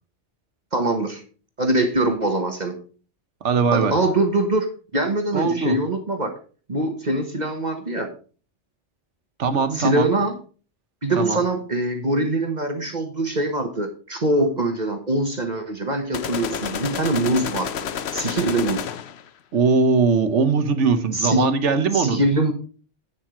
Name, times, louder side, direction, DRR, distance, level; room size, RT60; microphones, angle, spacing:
voice 1, 0.7-1.2 1.6-2.8 3.7-6.3 6.7-8.1 9.7-10.3 11.0-18.9 21.1-21.5 21.9-22.5, right 1 dB, 40° right, 5 dB, 1.5 m, -23 dB
voice 2, 3.4-4.0 5.3-5.8 9.4-10.1 11.2-11.4 19.5-22.2, right 5 dB, 80° right, 10 dB, 1.4 m, -20 dB
sound 1, 16.1-19.3, left 8 dB, 65° left, 1.0 m, -30 dB
9.4 x 7.4 x 5.0 m, 0.39 s
omnidirectional pair, 1.2 m